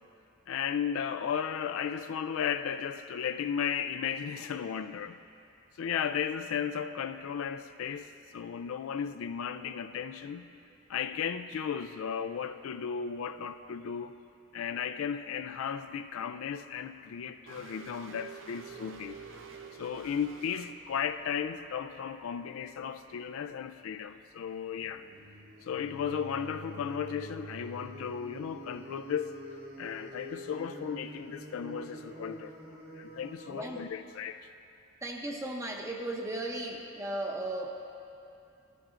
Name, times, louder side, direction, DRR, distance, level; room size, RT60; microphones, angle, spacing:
voice 1, 0.5-5.2 5.8-10.5 10.9-14.1 14.5-19.2 19.8-25.0 25.6-29.4 29.8-34.4, left 7 dB, 80° left, 9 dB, 0.3 m, -35 dB
sound 1, 17.5-20.7, right 5 dB, 70° right, 0.6 m, -48 dB
sound 2, 18.7-21.7 24.8-33.8, right 1 dB, 55° right, 1.8 m, -47 dB
voice 2, 33.5-33.8 35.0-37.8, right 1 dB, 15° right, 1 dB, 0.7 m, -36 dB
13.5 x 13.0 x 2.5 m, 2.6 s
head